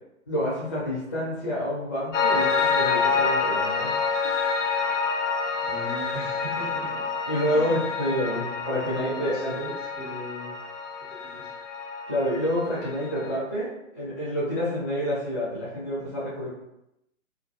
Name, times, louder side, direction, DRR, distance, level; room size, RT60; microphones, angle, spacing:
voice 1, 0.3-3.9 4.2-4.3 7.3-9.5 12.1-16.5, equal, 15° left, -8 dB, 0.5 m, -28 dB
Piano, 2.1-13.4, left 5 dB, 60° left, 0.5 m, -28 dB
voice 2, 5.6-7.0 7.5-7.8 8.2-10.6 11.0-11.5, right 1 dB, 30° right, -6 dB, 0.7 m, -39 dB
2.4 x 2.2 x 2.6 m, 0.86 s
figure-of-eight pair, 130°, 41 cm